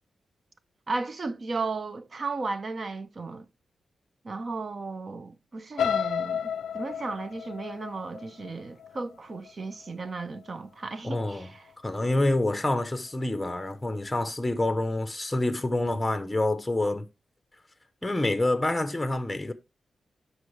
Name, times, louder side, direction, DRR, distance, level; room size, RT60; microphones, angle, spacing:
voice 1, 0.9-3.5 4.2-11.7, right 3 dB, 40° right, 0.8 m, -35 dB
sound 1, 5.8-9.7 10.2-10.5 10.9-11.0, left 8 dB, 85° left, 0.4 m, -32 dB
voice 2, 11.0-11.5 11.8-17.0 18.0-19.5, left 2 dB, 10° left, 0.9 m, -27 dB
12.0 x 5.0 x 3.3 m
cardioid pair, 105°, 0 cm